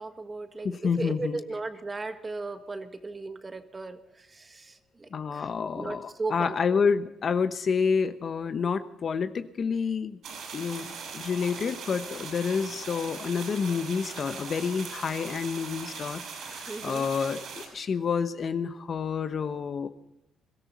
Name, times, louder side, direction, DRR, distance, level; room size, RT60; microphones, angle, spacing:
voice 1, 0.0-5.4 5.7-6.8 16.7-17.1, right 3 dB, 25° right, 7 dB, 1.7 m, -36 dB
voice 2, 0.6-1.4 5.1-10.2 10.5-19.9, left 6 dB, 50° left, 10 dB, 1.0 m, -29 dB
sound 1, 10.2-17.7, right 5 dB, 70° right, 6.4 m, -40 dB
22.5 x 13.5 x 4.2 m, 0.89 s
cardioid pair, 90°, 0 cm